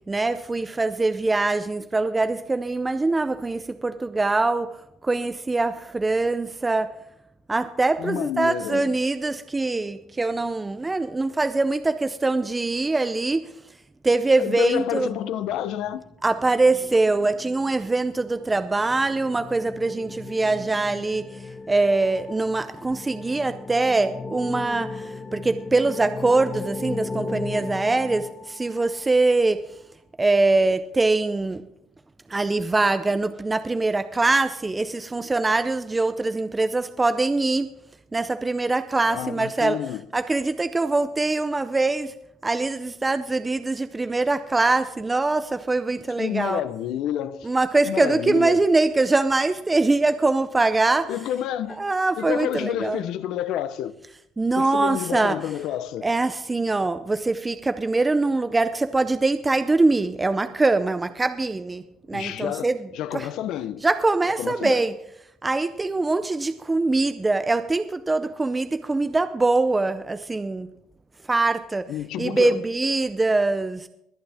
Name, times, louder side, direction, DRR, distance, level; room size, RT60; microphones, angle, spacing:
voice 1, 0.1-6.9 7.5-13.8 14.0-15.1 16.2-29.8 30.2-31.6 32.3-37.7 38.1-39.8 40.1-42.1 42.4-46.6 47.4-51.1 51.7-53.0 54.4-55.5 56.0-63.3 63.8-65.0 65.4-70.7 71.3-71.9 72.2-73.9, right 3 dB, 15° right, 0.5 m, -23 dB
voice 2, 8.0-8.9 14.4-16.0 39.1-40.0 46.2-47.5 47.8-48.6 51.1-51.8 52.2-53.9 54.6-56.1 62.1-62.7 62.9-63.8 64.4-64.8 71.9-72.6, left 11 dB, 65° left, 0.8 m, -29 dB
sound 1, 18.3-29.0, left 3 dB, 20° left, 0.9 m, -36 dB
22.0 x 9.0 x 3.5 m
cardioid pair, 165°, 0 cm